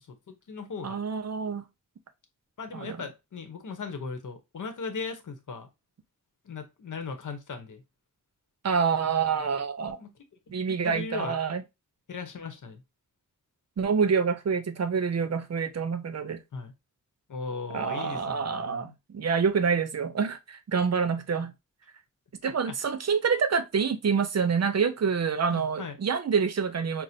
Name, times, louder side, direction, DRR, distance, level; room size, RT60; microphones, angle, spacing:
voice 1, 0.0-1.0 2.6-5.7 6.4-7.8 10.0-10.1 10.5-11.3 12.1-12.8 16.5-16.7 17.3-18.9 22.7-22.8 25.5-26.0, left 4 dB, 75° left, 0.8 m, -38 dB
voice 2, 0.8-1.6 2.7-3.0 8.6-10.0 10.5-11.6 13.8-16.4 17.7-21.5 22.4-27.0, right 6 dB, 55° right, 0.6 m, -27 dB
5.7 x 2.1 x 2.6 m
wide cardioid pair, 75°, 31 cm